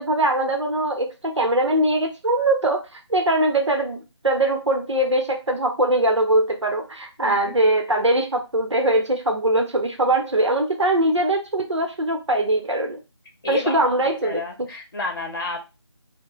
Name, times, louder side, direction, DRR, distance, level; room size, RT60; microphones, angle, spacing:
voice 1, 0.0-13.0 13.5-14.4, right 1 dB, 80° right, 3 dB, 0.7 m, -21 dB
voice 2, 7.2-7.5 13.4-13.9 14.2-15.6, left 3 dB, 45° left, 2 dB, 0.8 m, -30 dB
2.3 x 2.1 x 3.0 m, 0.27 s
figure-of-eight pair, 165°, 15 cm